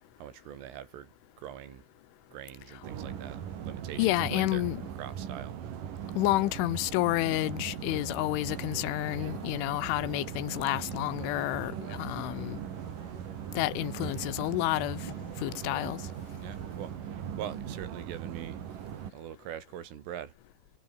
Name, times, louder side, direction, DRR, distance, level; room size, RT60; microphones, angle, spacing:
voice 1, 0.2-1.9 2.3-4.6 5.0-5.6 16.4-18.6 19.1-20.3, right 10 dB, 80° right, 5.2 m, -43 dB
sound 1, 2.8-19.1, right 9 dB, 50° right, 3.2 m, -39 dB
voice 2, 4.0-4.8 6.2-12.6 13.5-15.1 15.4-16.0, left 18 dB, 85° left, 3.2 m, -30 dB
sound 2, 7.7-16.7, left 2 dB, 25° left, 8.2 m, -55 dB
omnidirectional pair, 5.7 m